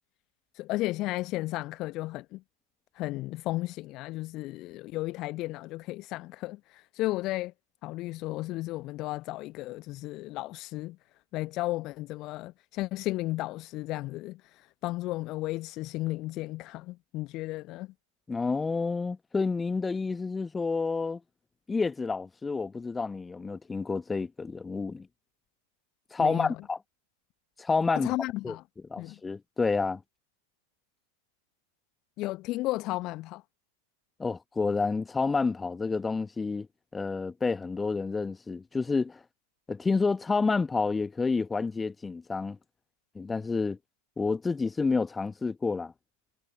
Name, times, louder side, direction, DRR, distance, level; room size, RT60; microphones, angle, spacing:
voice 1, 0.5-2.4 2.9-7.5 7.8-11.0 11.3-17.9 26.2-26.6 28.0-28.6 29.0-29.2 32.2-33.4, left 18 dB, 40° left, 0.9 m, -34 dB
voice 2, 18.3-21.2 21.7-25.1 26.1-26.8 27.6-28.1 28.4-28.5 28.9-30.0 34.2-36.7 36.9-39.2 39.7-42.6 43.1-43.8 44.2-45.9, left 4 dB, 10° left, 1.4 m, -29 dB
figure-of-eight pair, 90°, 0 cm